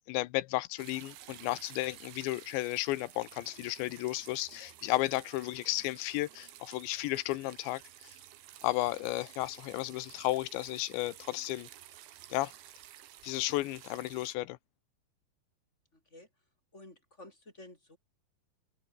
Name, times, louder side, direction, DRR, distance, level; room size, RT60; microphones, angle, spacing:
voice 1, 0.1-8.2 8.6-11.7 12.3-12.5 13.2-14.6, left 18 dB, 85° left, 3.2 m, -33 dB
sound 1, 0.8-14.4, right 12 dB, 85° right, 4.2 m, -53 dB
voice 2, 15.9-16.4 16.7-18.0, left 2 dB, 15° left, 6.3 m, -53 dB
open air
omnidirectional pair, 5.1 m